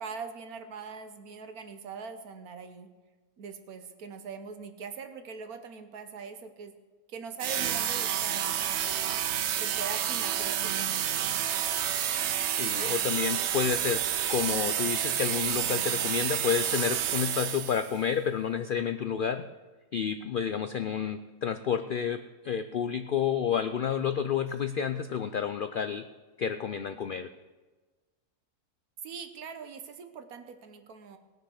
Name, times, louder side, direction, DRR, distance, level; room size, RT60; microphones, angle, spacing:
voice 1, 0.0-2.9 3.4-6.7 7.1-9.0 9.6-11.2 29.0-31.2, right 5 dB, 85° right, 8 dB, 1.5 m, -42 dB
sound 1, 7.4-18.0, right 10 dB, 60° right, 0.8 m, -29 dB
voice 2, 12.6-14.0 14.3-19.5 19.9-26.1 26.4-27.3, left 8 dB, 75° left, 10 dB, 0.4 m, -30 dB
19.5 x 6.7 x 6.4 m, 1.3 s
omnidirectional pair, 1.5 m